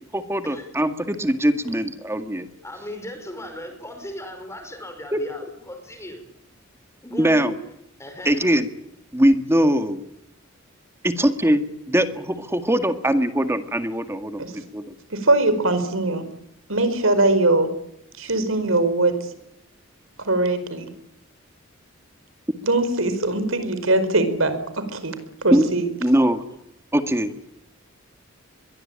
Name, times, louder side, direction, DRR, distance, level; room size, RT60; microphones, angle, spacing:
voice 1, 0.1-2.5 5.1-5.2 7.2-7.6 8.3-8.7 9.1-10.0 11.0-14.9 25.5-25.7 26.0-26.4 26.9-27.3, equal, 15° right, 8 dB, 1.9 m, -21 dB
voice 2, 2.6-6.2 7.0-7.6 8.0-8.5, left 1 dB, 15° left, 7 dB, 5.3 m, -37 dB
voice 3, 15.1-16.3 16.7-17.7 18.2-19.1 20.3-20.9 22.6-25.1 25.4-25.9, right 2 dB, 75° right, 10 dB, 4.9 m, -21 dB
25.5 x 22.5 x 8.9 m, 0.77 s
head